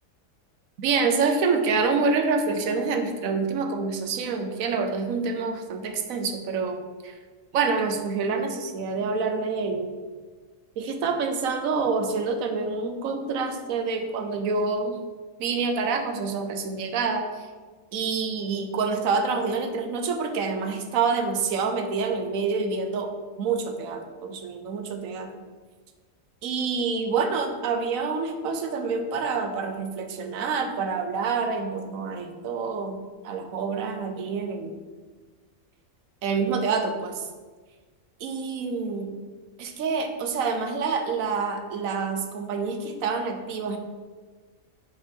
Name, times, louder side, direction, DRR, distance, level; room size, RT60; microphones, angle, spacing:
voice 1, 0.8-6.8 7.0-7.2 7.5-9.9 10.8-15.0 15.4-17.5 17.9-23.1 23.4-25.3 26.4-34.8 36.2-37.3 38.2-39.2 39.6-43.8, right 4 dB, 75° right, 6 dB, 1.1 m, -27 dB
5.2 x 4.5 x 5.3 m, 1.4 s
omnidirectional pair, 1.4 m